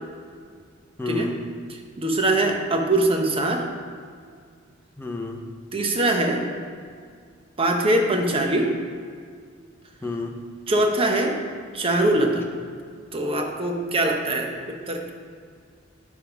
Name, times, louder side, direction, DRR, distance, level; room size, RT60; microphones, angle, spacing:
voice 1, 1.0-1.4 5.0-5.4 10.0-10.4, left 3 dB, 10° left, 2 dB, 0.6 m, -30 dB
voice 2, 1.7-3.7 5.7-6.5 7.6-8.8 10.7-11.4 11.7-12.5 13.1-15.1, right 1 dB, 30° right, 3 dB, 0.8 m, -22 dB
9.9 x 3.5 x 6.0 m, 2.1 s
head